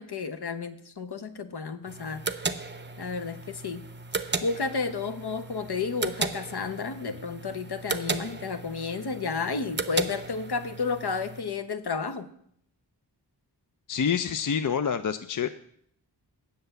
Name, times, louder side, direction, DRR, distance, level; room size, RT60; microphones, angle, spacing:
voice 1, 0.0-2.2 3.0-3.9 4.4-12.3, left 4 dB, 65° left, 10 dB, 0.9 m, -32 dB
sound 1, 1.9-11.4, right 3 dB, 25° right, 0.6 m, -35 dB
voice 2, 13.9-15.5, left 7 dB, 50° left, 10 dB, 0.5 m, -27 dB
7.9 x 6.7 x 8.0 m, 0.68 s
wide cardioid pair, 80°, 43 cm